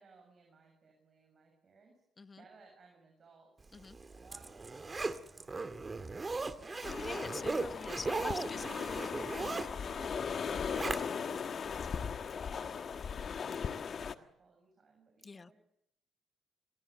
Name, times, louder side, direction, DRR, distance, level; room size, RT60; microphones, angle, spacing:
voice 1, 0.0-2.0 2.4-7.0 7.3-7.5 7.9-9.2 9.5-12.1 12.5-15.6, right 4 dB, 45° right, 2 dB, 7.4 m, -62 dB
Zipper (clothing), 3.8-11.4 11.8-11.9, right 3 dB, 25° right, 1.9 m, -38 dB
sound 1, 6.8-14.2, left 6 dB, 50° left, 1.5 m, -38 dB
voice 2, 7.0-8.6 9.4-9.5 12.3-12.5 15.2-15.5, left 4 dB, 30° left, 13 dB, 1.1 m, -44 dB
27.5 x 22.5 x 7.9 m, 0.74 s
cardioid pair, 90°, 0 cm